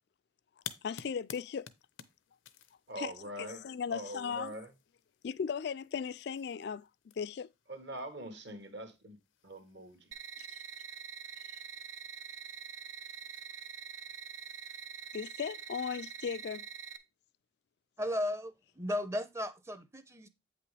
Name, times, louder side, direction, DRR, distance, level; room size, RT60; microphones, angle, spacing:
sound 1, 0.6-16.6, left 9 dB, 90° left, 0.7 m, -55 dB
voice 1, 0.6-1.7 2.7-4.7 5.2-7.5 10.4-10.6 11.4-11.6 15.1-16.7, left 6 dB, 60° left, 0.3 m, -38 dB
voice 2, 2.9-3.6 3.9-4.7 7.7-9.2 9.4-10.1, right 1 dB, 65° right, 1.6 m, -43 dB
sound 2, 10.1-17.0, right 7 dB, 85° right, 0.8 m, -45 dB
voice 3, 18.0-20.3, left 1 dB, 15° right, 0.6 m, -35 dB
8.3 x 5.8 x 3.3 m
head